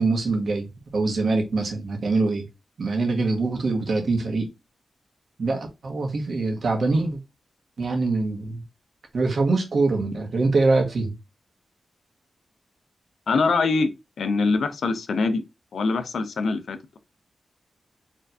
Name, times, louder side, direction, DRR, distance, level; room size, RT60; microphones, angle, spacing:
voice 1, 0.0-2.4 2.8-4.5 5.4-7.2 7.8-8.6 9.1-11.1, right 3 dB, 60° right, 1.5 m, -24 dB
voice 2, 13.3-13.9 14.2-15.4 15.7-17.0, left 4 dB, 75° left, 0.6 m, -23 dB
4.4 x 3.6 x 2.7 m
wide cardioid pair, 125°, 0 cm